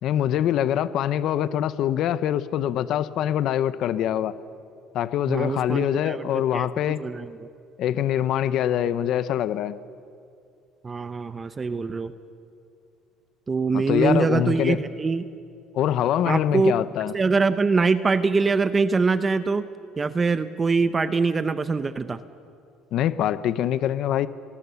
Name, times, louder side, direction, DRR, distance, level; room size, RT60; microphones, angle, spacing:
voice 1, 0.0-4.3 4.9-7.0 7.8-9.8 13.7-14.8 15.7-17.1 22.9-24.3, left 11 dB, 60° left, 14 dB, 0.7 m, -24 dB
voice 2, 5.3-6.2 6.5-6.7 7.0-7.5 10.8-12.1 13.5-15.3 16.2-16.7 17.1-19.6 20.0-22.2, right 4 dB, 20° right, 12 dB, 0.7 m, -23 dB
22.5 x 21.0 x 6.9 m, 2.4 s
cardioid pair, 130°, 0 cm